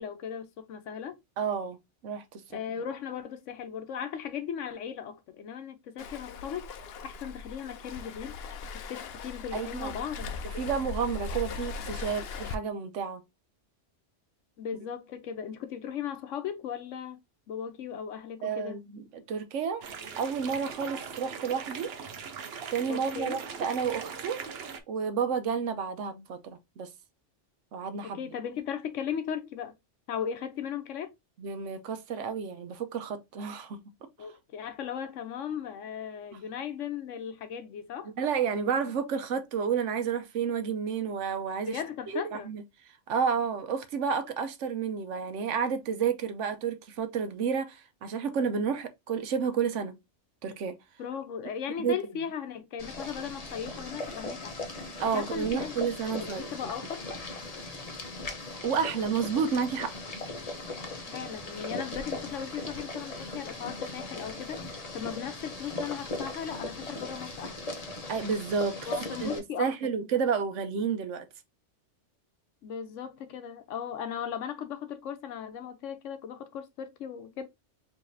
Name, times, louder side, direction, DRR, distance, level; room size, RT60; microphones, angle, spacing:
voice 1, 0.0-1.2 2.5-6.7 7.0-8.3 8.7-10.3 14.6-17.2 17.5-18.8 22.9-23.4 28.0-29.7 30.1-31.1 34.2-38.1 41.6-42.5 51.0-54.5 55.0-55.7 56.1-57.1 61.1-67.6 68.9-69.7 72.6-77.4, left 8 dB, 90° left, 1.1 m, -37 dB
voice 2, 1.4-1.8 2.0-2.4 9.5-9.9 10.6-13.2 18.4-19.8 20.2-21.9 22.7-24.4 24.9-26.9 27.7-28.2 31.4-33.8 38.0-41.8 42.1-42.6 43.1-50.0 50.4-50.8 51.8-52.0 55.0-56.7 58.6-59.9 68.1-71.2, right 6 dB, 85° right, 1.1 m, -31 dB
Waves surf, 6.0-12.5, left 4 dB, 65° left, 0.8 m, -39 dB
sound 1, 19.8-24.8, right 6 dB, 60° right, 0.9 m, -40 dB
Boiling, 52.8-69.4, left 2 dB, 35° left, 0.9 m, -39 dB
4.8 x 3.3 x 2.6 m
omnidirectional pair, 1.2 m